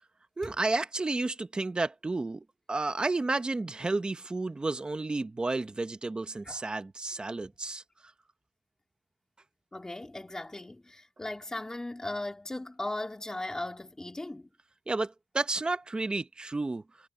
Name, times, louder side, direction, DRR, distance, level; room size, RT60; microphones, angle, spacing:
voice 1, 0.4-7.8 14.9-16.8, right 3 dB, 25° right, 1.0 m, -31 dB
voice 2, 9.7-14.5, left 2 dB, 15° left, 3.7 m, -37 dB
wide cardioid pair, 140°, 4 cm